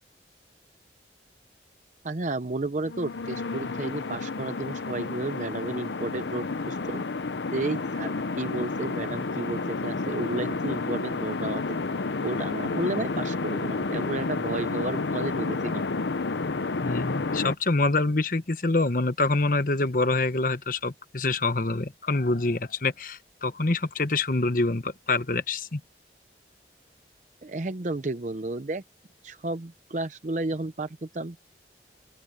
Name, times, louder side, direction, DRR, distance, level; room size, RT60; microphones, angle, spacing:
voice 1, 2.0-7.0 7.5-11.8 12.2-15.8 27.4-28.8 29.2-31.4, right 2 dB, 45° right, 0.6 m, -32 dB
sound 1, 2.9-17.5, left 3 dB, 80° left, 0.8 m, -30 dB
voice 2, 16.8-25.8, left 2 dB, 50° left, 1.2 m, -26 dB
open air
head